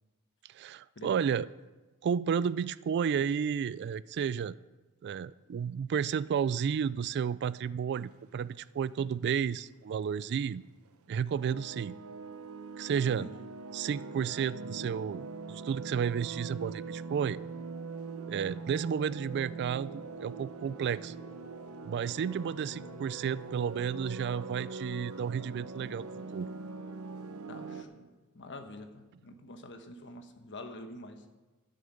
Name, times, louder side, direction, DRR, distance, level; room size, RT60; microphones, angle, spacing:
voice 1, 0.5-1.5 2.0-4.6 5.0-10.6 11.1-12.0 12.8-13.3 13.7-17.4 18.3-21.1 21.8-26.5, right 7 dB, 50° right, 19 dB, 0.3 m, -32 dB
sound 1, 8.1-8.4 9.0-9.1 9.7-9.8 10.7-10.9 11.2-27.8, right 4 dB, 80° right, 0.8 m, -42 dB
sound 2, 18.6-24.7, equal, 25° left, 1.7 m, -56 dB
voice 2, 27.5-28.1 28.3-31.2, left 1 dB, 55° left, 6 dB, 1.2 m, -46 dB
12.5 x 6.7 x 7.6 m, 1.2 s
head